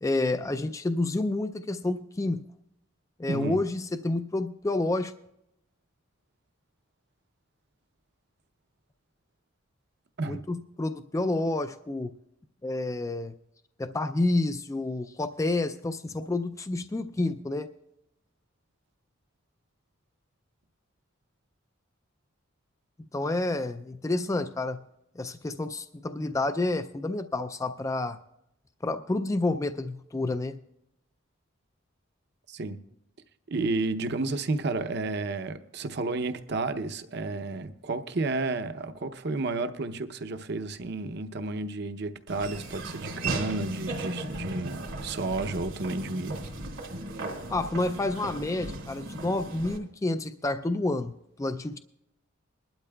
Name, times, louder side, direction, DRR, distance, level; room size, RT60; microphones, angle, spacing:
voice 1, 0.0-2.4 3.2-5.1 10.2-12.1 12.6-13.4 13.8-17.7 23.1-24.8 25.2-28.2 28.8-30.6 47.5-51.8, left 2 dB, 15° left, 0.3 m, -29 dB
voice 2, 3.3-3.6 10.2-10.4 32.5-32.8 33.5-46.4, right 3 dB, 55° right, 0.7 m, -31 dB
Laughter / Walk footsteps, 42.3-49.8, right 2 dB, 85° right, 2.5 m, -36 dB
21.5 x 12.0 x 2.3 m
head